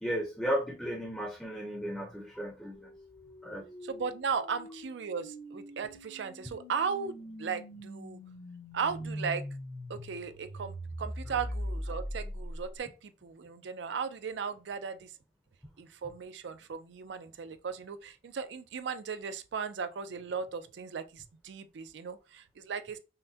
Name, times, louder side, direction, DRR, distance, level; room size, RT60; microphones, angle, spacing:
voice 1, 0.0-2.9 3.4-3.6, equal, 5° left, 0.6 m, -34 dB
sound 1, 2.7-12.8, equal, 65° left, 1.1 m, -42 dB
voice 2, 3.8-8.2 8.7-9.5 9.9-15.1 15.8-23.0, right 6 dB, 80° right, 0.4 m, -37 dB
5.6 x 2.1 x 2.7 m
head